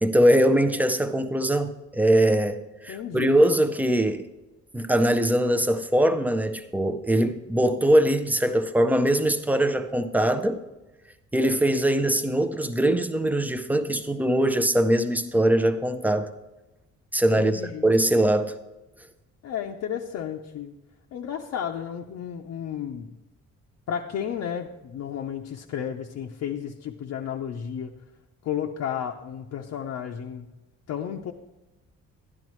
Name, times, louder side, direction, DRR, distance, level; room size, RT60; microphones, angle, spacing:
voice 1, 0.0-4.3 4.7-10.6 11.3-16.3 17.1-18.6, right 1 dB, 5° right, 0.5 m, -22 dB
voice 2, 2.9-3.4 17.4-17.9 19.4-20.8 21.1-23.1 23.9-28.0 28.4-30.5 30.9-31.3, left 9 dB, 60° left, 0.6 m, -32 dB
12.5 x 10.5 x 3.1 m
cardioid pair, 150°, 30 cm